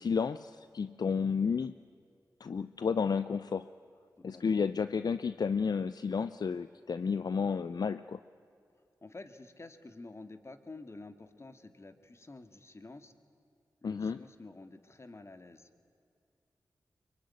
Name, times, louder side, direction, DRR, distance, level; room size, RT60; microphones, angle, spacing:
voice 1, 0.0-1.8 2.4-3.7 4.2-8.2 13.8-14.2, left 5 dB, 60° left, 13 dB, 0.6 m, -31 dB
voice 2, 4.2-4.7 9.0-13.1 13.8-15.7, left 2 dB, 35° left, 9 dB, 2.0 m, -50 dB
24.0 x 23.5 x 9.6 m, 2.4 s
cardioid pair, 55°, 7 cm